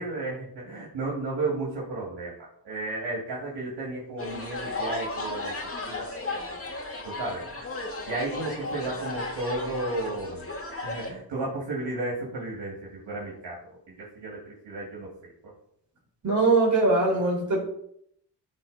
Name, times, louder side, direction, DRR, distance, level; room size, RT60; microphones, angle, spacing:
voice 1, 0.0-5.6 5.9-6.4 7.0-7.6 8.1-10.5 10.8-13.6 13.9-15.3, right 2 dB, 80° right, -5 dB, 2.8 m, -33 dB
sound 1, 4.2-11.1, left 2 dB, 35° left, 2.1 m, -35 dB
voice 2, 16.2-17.6, right 3 dB, 45° right, -3 dB, 3.8 m, -22 dB
13.5 x 4.6 x 4.3 m, 0.71 s
cardioid pair, 105°, 40 cm